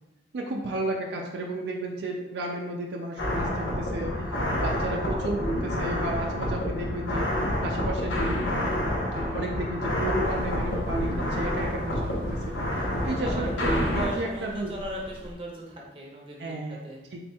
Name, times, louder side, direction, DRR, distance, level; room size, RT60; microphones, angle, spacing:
voice 1, 0.3-4.3 4.6-8.4 9.3-12.5 13.0-14.7 16.4-16.8 17.1-17.2, right 1 dB, 65° right, 0 dB, 0.4 m, -33 dB
sound 1, 3.2-14.1, equal, 85° left, 0.8 m, -28 dB
sound 2, 10.2-15.3, equal, 10° left, 0.7 m, -42 dB
voice 2, 13.1-17.0, right 1 dB, 30° right, -2 dB, 0.7 m, -37 dB
4.1 x 3.5 x 2.3 m, 1.0 s
head